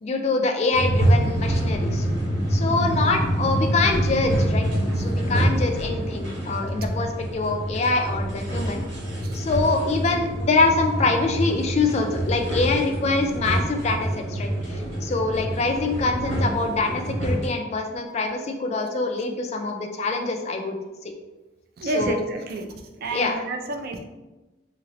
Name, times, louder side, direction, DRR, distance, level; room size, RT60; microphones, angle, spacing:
voice 1, 0.0-2.1 2.5-4.7 5.0-8.8 9.3-20.8 21.9-22.2 23.1-23.4, left 3 dB, 35° left, 4 dB, 0.3 m, -24 dB
sound 1, 0.7-17.5, right 1 dB, 80° right, 1.1 m, -26 dB
voice 2, 21.8-22.7 23.0-24.0, right 2 dB, 50° right, 4 dB, 0.4 m, -29 dB
2.9 x 2.8 x 2.9 m, 1.1 s
head